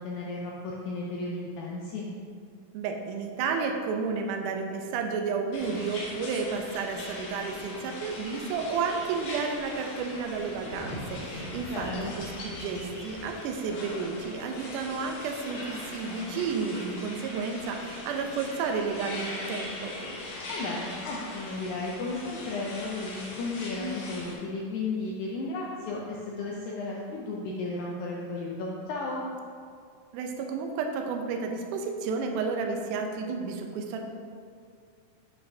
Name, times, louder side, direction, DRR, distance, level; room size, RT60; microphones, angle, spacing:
voice 1, 0.0-2.1 11.7-12.2 20.5-29.3, left 3 dB, 85° left, -4 dB, 1.7 m, -34 dB
voice 2, 2.7-11.9 12.2-19.9 30.1-34.1, right 5 dB, 80° right, 3 dB, 1.9 m, -32 dB
sound 1, 5.5-24.3, left 2 dB, 65° left, 1.9 m, -40 dB
Thunder, 9.9-15.3, left 1 dB, 40° left, 1.3 m, -43 dB
7.9 x 5.4 x 2.7 m, 2.2 s
omnidirectional pair, 4.2 m